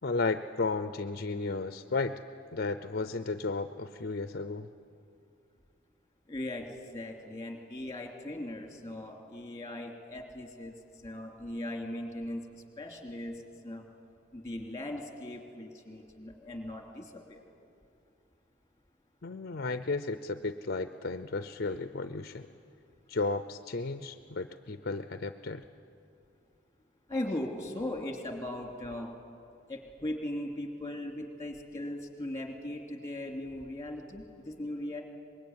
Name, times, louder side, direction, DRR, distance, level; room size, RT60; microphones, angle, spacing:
voice 1, 0.0-2.2 2.5-4.7 19.2-22.5 23.1-25.6, left 3 dB, 50° left, 11 dB, 0.6 m, -33 dB
voice 2, 6.3-10.7 11.0-13.3 13.6-13.8 14.3-17.4 27.1-29.1 29.7-35.0, left 1 dB, 15° left, 3 dB, 2.9 m, -39 dB
24.5 x 21.5 x 9.6 m, 2.5 s
head